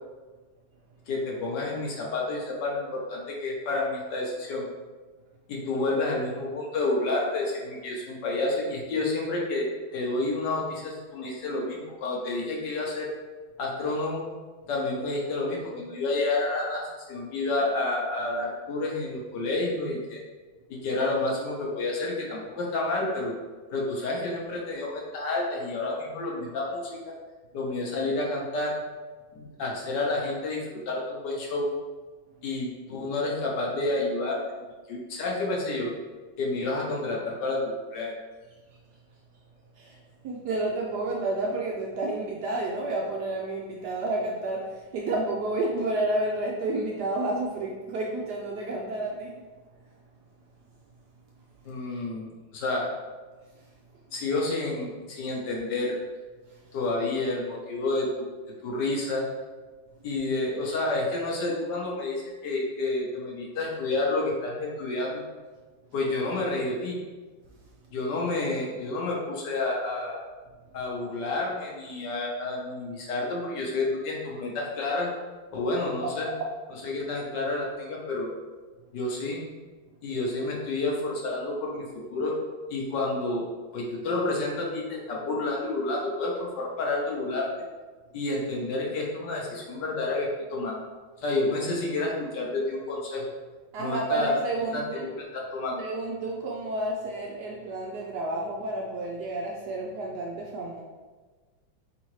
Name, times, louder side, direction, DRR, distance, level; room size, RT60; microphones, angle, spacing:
voice 1, 1.1-4.7 5.5-13.1 13.6-14.3 14.7-20.2 20.7-23.3 23.7-27.1 27.5-28.7 29.3-31.7 32.4-35.9 36.4-38.1 51.6-52.2 52.5-52.9 54.1-56.0 56.7-58.3 58.6-59.2 60.0-65.2 65.9-67.0 67.9-70.2 70.7-75.1 75.5-76.3 76.8-78.3 78.9-79.4 80.0-82.4 82.7-83.5 83.7-87.5 88.1-90.8 91.2-93.2 93.8-94.3 94.7-95.0 95.3-95.8, left 2 dB, 65° left, -2 dB, 1.3 m, -29 dB
voice 2, 40.2-49.4 93.7-95.1 95.8-100.8, right 2 dB, 70° right, -2 dB, 1.0 m, -30 dB
4.1 x 3.8 x 3.1 m, 1.3 s
omnidirectional pair, 2.1 m